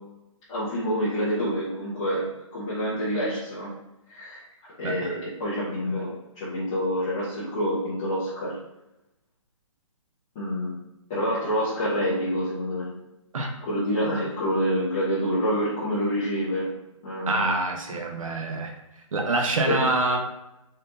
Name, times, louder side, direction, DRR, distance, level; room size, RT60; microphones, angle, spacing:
voice 1, 0.5-2.3 2.5-3.7 4.1-8.6 10.4-10.7 11.1-12.9 13.6-16.7 17.0-17.5 19.6-20.1, equal, 10° left, -12 dB, 0.5 m, -27 dB
voice 2, 4.8-5.2 13.3-13.5 17.3-18.7 19.1-20.2, right 2 dB, 75° right, 3 dB, 0.7 m, -26 dB
4.2 x 3.5 x 2.5 m, 0.93 s
hypercardioid pair, 175°, 17 cm